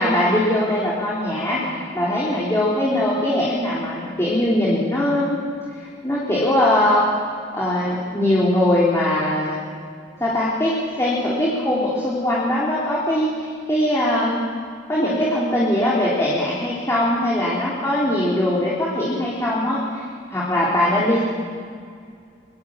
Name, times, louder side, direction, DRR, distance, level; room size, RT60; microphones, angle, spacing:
voice 1, 0.0-5.4 6.0-7.1 7.5-9.6 10.2-14.4 14.9-20.0 20.3-21.2, left 1 dB, 15° left, -7 dB, 3.5 m, -21 dB
23.0 x 22.5 x 7.4 m, 2.2 s
head